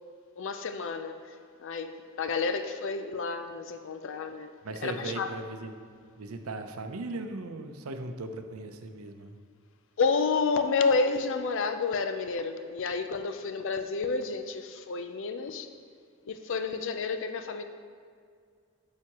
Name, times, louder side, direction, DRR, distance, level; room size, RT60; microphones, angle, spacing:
voice 1, 0.4-1.2 1.6-4.5 4.8-5.3 10.0-15.7 16.3-17.6, left 4 dB, 60° left, 8 dB, 0.5 m, -30 dB
voice 2, 4.6-5.7 6.2-9.4, right 2 dB, 80° right, 7 dB, 0.6 m, -38 dB
9.1 x 7.5 x 3.0 m, 2.1 s
head